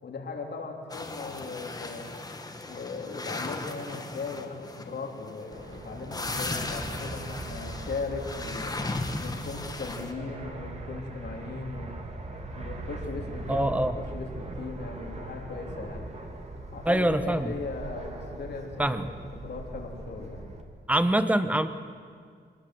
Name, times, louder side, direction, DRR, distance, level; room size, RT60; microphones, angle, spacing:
voice 1, 0.0-2.1 2.7-8.8 9.2-12.0 12.5-13.7 14.1-16.1 16.7-20.5, left 4 dB, 65° left, 1 dB, 3.6 m, -38 dB
sound 1, 0.9-10.1, left 2 dB, 20° left, 1.6 m, -37 dB
Fixed-wing aircraft airplane, 5.5-20.6, right 2 dB, 35° right, 2.4 m, -40 dB
voice 2, 13.5-14.0 16.8-17.5 18.8-19.1 20.9-21.7, right 1 dB, 5° right, 11 dB, 1.0 m, -24 dB
24.5 x 20.0 x 7.9 m, 2.1 s
wide cardioid pair, 150°, 19 cm